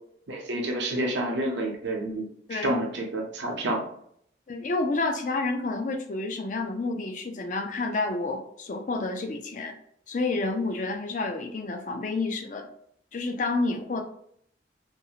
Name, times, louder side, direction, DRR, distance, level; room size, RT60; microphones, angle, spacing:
voice 1, 0.3-3.9, right 1 dB, 75° right, 0 dB, 0.6 m, -29 dB
voice 2, 4.5-9.7 10.1-12.7 13.1-14.0, left 3 dB, 45° left, 5 dB, 0.4 m, -29 dB
2.6 x 2.4 x 2.8 m, 0.67 s
head